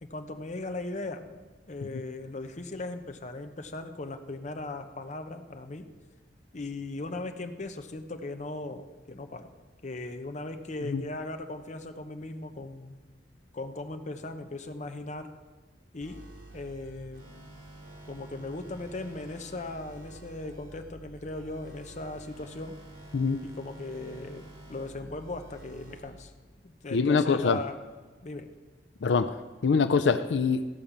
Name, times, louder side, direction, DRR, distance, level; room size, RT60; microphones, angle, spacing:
voice 1, 0.0-1.3 1.7-5.9 6.5-9.5 9.8-13.0 13.5-15.3 15.9-16.2 16.5-17.3 18.0-22.8 23.4-26.3 26.6-27.8 28.2-28.5, left 2 dB, 40° left, 6 dB, 0.9 m, -38 dB
sound 1, 16.0-26.0, right 1 dB, 80° right, 3.6 m, -49 dB
voice 2, 26.9-27.6 29.0-29.4 29.6-30.7, left 5 dB, 85° left, 10 dB, 0.5 m, -24 dB
14.5 x 5.3 x 7.2 m, 1.3 s
head